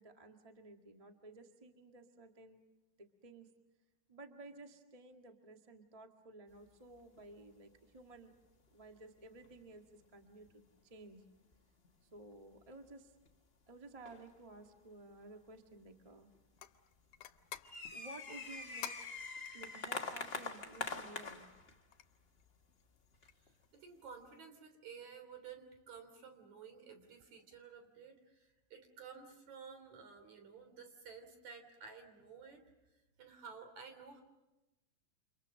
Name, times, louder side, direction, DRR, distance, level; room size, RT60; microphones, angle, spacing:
voice 1, 0.0-2.6 3.0-3.5 4.1-8.3 8.7-11.2 12.1-13.1 13.7-16.3 17.9-18.9 19.5-21.5, right 2 dB, 15° right, 4 dB, 1.4 m, -55 dB
sound 1, 6.9-7.3 7.6-7.7 8.3-8.4 9.2-9.7 10.3-10.7 11.4-12.3 12.8-12.9 13.3-13.4 14.0-14.6 15.2-15.3 15.9-16.0 16.2-16.6 17.1-21.8 22.4-22.5 23.1-23.5, left 3 dB, 30° left, 1.1 m, -44 dB
sound 2, 16.6-23.7, left 11 dB, 85° left, 2.6 m, -54 dB
voice 2, 23.7-32.6 33.2-34.2, right 6 dB, 65° right, 7 dB, 4.6 m, -53 dB
29.5 x 27.5 x 6.5 m, 1.0 s
omnidirectional pair, 3.5 m